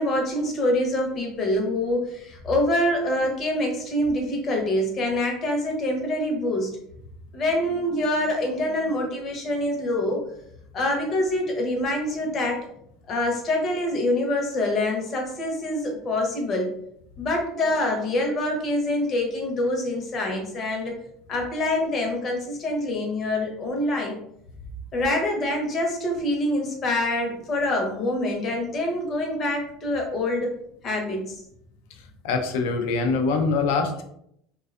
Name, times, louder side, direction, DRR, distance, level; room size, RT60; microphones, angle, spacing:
voice 1, 0.0-6.7 7.3-10.2 10.7-12.6 13.1-16.7 17.2-21.0 21.3-24.1 24.9-30.5 30.8-31.4, left 1 dB, 35° left, 1 dB, 0.7 m, -25 dB
voice 2, 31.9-34.0, left 4 dB, 75° left, 6 dB, 0.4 m, -24 dB
2.5 x 2.3 x 2.4 m, 0.72 s
supercardioid pair, 125°, 0 cm